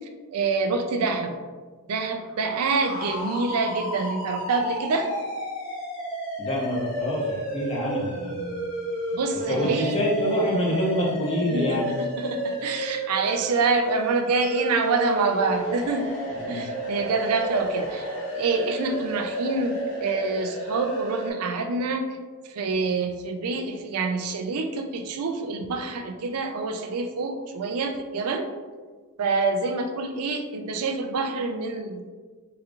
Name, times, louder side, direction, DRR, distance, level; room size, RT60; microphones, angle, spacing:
voice 1, 0.3-1.4 1.9-5.1 9.1-10.0 11.4-16.1 16.5-18.1 18.3-22.0 22.5-28.5 29.2-32.1, right 3 dB, 85° right, 5 dB, 0.4 m, -26 dB
sound 1, 2.3-21.3, right 1 dB, 80° left, 1.3 m, -32 dB
voice 2, 6.4-8.6 9.5-11.9 16.5-16.7, equal, 25° left, -4 dB, 0.8 m, -26 dB
4.8 x 2.8 x 2.4 m, 1.5 s
head